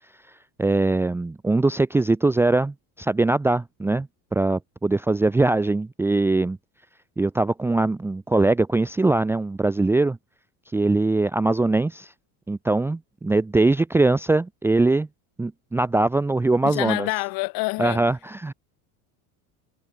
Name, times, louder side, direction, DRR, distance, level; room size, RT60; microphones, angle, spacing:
voice 1, 0.6-6.6 7.2-10.2 10.7-12.1 12.5-15.1 15.4-17.1 17.8-18.5, right 2 dB, 5° right, 0.8 m, -22 dB
voice 2, 16.6-18.0, left 26 dB, 50° left, 2.5 m, -27 dB
cardioid pair, 170°, 43 cm